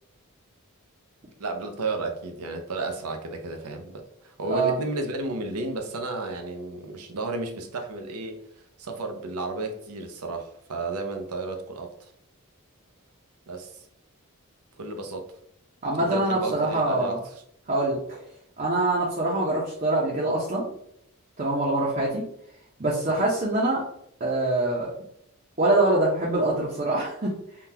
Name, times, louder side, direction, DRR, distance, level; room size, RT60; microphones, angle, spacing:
voice 1, 1.4-12.1 13.5-13.9 14.8-15.3 16.0-17.2, right 3 dB, 85° right, 5 dB, 0.6 m, -33 dB
voice 2, 15.8-17.2 17.7-18.2 18.6-20.6 21.4-22.2 22.8-23.8 24.2-24.9 25.6-27.3, right 2 dB, 35° right, -5 dB, 0.7 m, -24 dB
3.7 x 2.3 x 2.8 m, 0.72 s
head